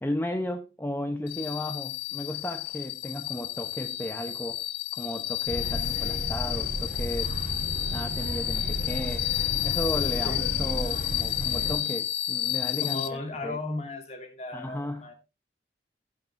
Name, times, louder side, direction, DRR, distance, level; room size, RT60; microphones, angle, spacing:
voice 1, 0.0-4.6 4.9-7.3 7.9-9.3 9.6-13.6 14.5-15.1, left 1 dB, 10° left, 0.7 m, -34 dB
sound 1, 1.3-13.1, left 15 dB, 60° left, 0.9 m, -31 dB
sound 2, 5.5-11.8, equal, 45° right, 5.1 m, -33 dB
voice 2, 12.8-15.1, left 2 dB, 40° left, 2.3 m, -35 dB
15.5 x 6.6 x 3.3 m
head